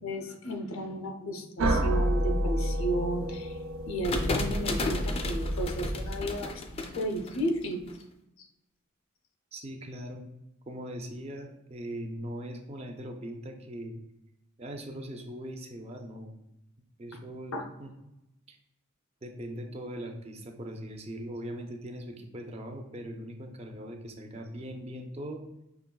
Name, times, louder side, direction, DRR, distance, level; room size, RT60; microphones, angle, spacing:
voice 1, 0.0-3.6 3.9-7.8 8.4-8.5 17.5-17.7, right 1 dB, 75° left, 5 dB, 0.6 m, -33 dB
sound 1, 1.6-6.3, equal, 85° right, 0.5 m, -30 dB
sound 2, 4.0-7.9, left 2 dB, 30° left, 0.4 m, -32 dB
voice 2, 9.5-10.3 10.7-14.0 14.6-16.3 17.0-17.9 18.5-18.6 19.2-25.4, right 1 dB, 30° right, 3 dB, 0.5 m, -40 dB
5.8 x 3.0 x 2.2 m, 0.91 s
head